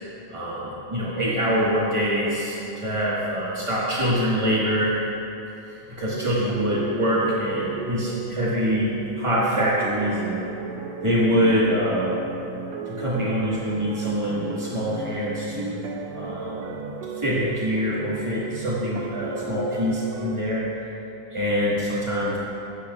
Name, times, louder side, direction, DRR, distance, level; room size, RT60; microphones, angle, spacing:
voice 1, 0.3-5.0 5.7-8.9 9.2-10.4 11.0-12.3 12.9-15.8 16.1-16.7 17.2-20.7 21.3-22.4, equal, 30° right, -8 dB, 0.5 m, -24 dB
sound 1, 6.1-20.4, right 5 dB, 75° right, 1.8 m, -35 dB
16.0 x 13.0 x 2.4 m, 3.0 s
omnidirectional pair, 3.4 m